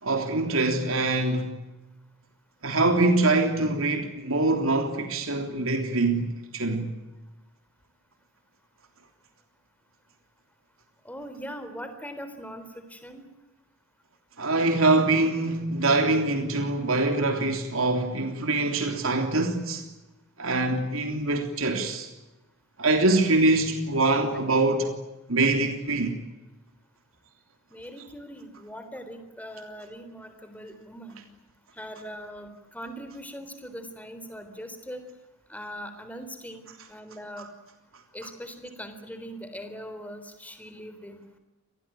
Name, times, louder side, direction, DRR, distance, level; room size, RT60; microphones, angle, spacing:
voice 1, 0.0-1.6 2.6-6.9 14.4-19.8 20.4-22.1 22.8-24.9 25.3-26.2, right 2 dB, 75° right, 3.3 m, -24 dB
voice 2, 11.0-13.2 27.7-31.2 31.8-35.0 35.5-37.5 38.1-41.2, equal, 5° left, 3.9 m, -41 dB
27.0 x 20.0 x 9.1 m
head